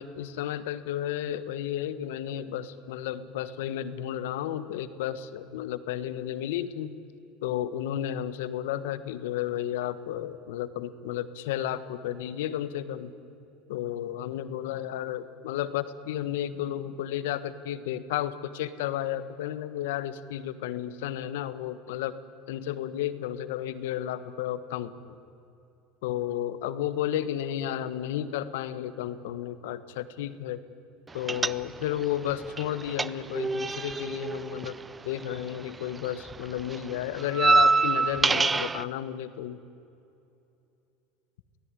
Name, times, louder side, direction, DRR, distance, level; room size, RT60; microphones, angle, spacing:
voice 1, 0.0-7.0 7.4-13.1 13.7-22.2 22.5-24.9 26.0-30.6 31.1-39.6, left 11 dB, 80° left, 13 dB, 1.4 m, -32 dB
sound 1, 31.3-32.0 32.3-35.7 35.9-38.8, right 4 dB, 20° right, 0.6 m, -26 dB
24.5 x 17.5 x 10.0 m, 2.8 s
supercardioid pair, 105°, 0 cm